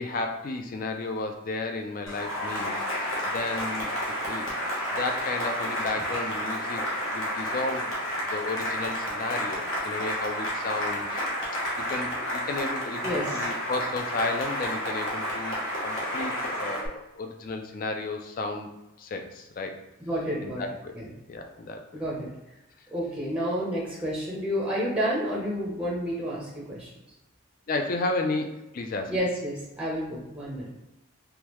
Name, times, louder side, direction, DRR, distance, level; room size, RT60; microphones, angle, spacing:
voice 1, 0.0-3.9 4.2-4.5 4.9-6.8 7.1-7.9 8.3-11.2 11.8-18.7 19.0-19.8 20.4-20.9 21.3-21.8 27.7-29.1, left 3 dB, 40° left, 4 dB, 0.3 m, -33 dB
Cheering / Applause, 2.1-16.9, equal, 60° left, 0.9 m, -31 dB
voice 2, 13.0-13.5 20.0-20.6 20.9-21.1 21.9-22.3 22.9-26.9 29.1-30.7, equal, 5° right, -5 dB, 0.6 m, -30 dB
3.5 x 2.2 x 3.0 m, 0.96 s
head